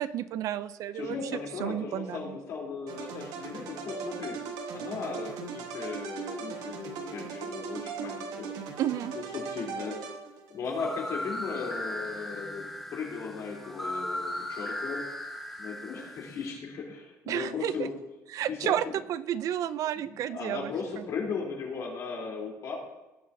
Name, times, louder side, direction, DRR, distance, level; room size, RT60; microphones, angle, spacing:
voice 1, 0.0-1.2 1.6-2.4 8.8-9.1 17.3-17.9 18.3-21.0, right 11 dB, 60° right, 15 dB, 0.4 m, -31 dB
voice 2, 0.9-4.4 4.7-8.5 9.1-10.0 10.5-12.6 12.9-15.0 15.6-17.9 18.5-18.9 20.3-22.8, left 5 dB, 55° left, -1 dB, 3.4 m, -36 dB
sound 1, 2.9-10.6, right 6 dB, 80° right, 1.3 m, -39 dB
sound 2, 10.7-16.5, left 1 dB, 5° left, 1.2 m, -37 dB
18.5 x 7.9 x 2.7 m, 1.0 s
cardioid pair, 140°, 6 cm